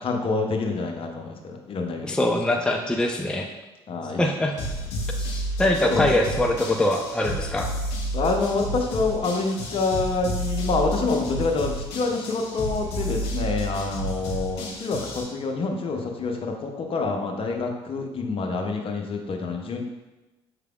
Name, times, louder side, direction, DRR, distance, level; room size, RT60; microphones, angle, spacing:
voice 1, 0.0-2.1 3.9-4.3 5.8-6.1 8.1-19.8, left 3 dB, 45° left, 3 dB, 0.7 m, -27 dB
voice 2, 2.0-3.5 4.2-4.5 5.2-7.7, left 1 dB, 5° left, 2 dB, 0.4 m, -23 dB
sound 1, 4.6-15.2, equal, 75° left, 0.8 m, -31 dB
5.8 x 3.3 x 2.3 m, 1.1 s
hypercardioid pair, 50°, 13 cm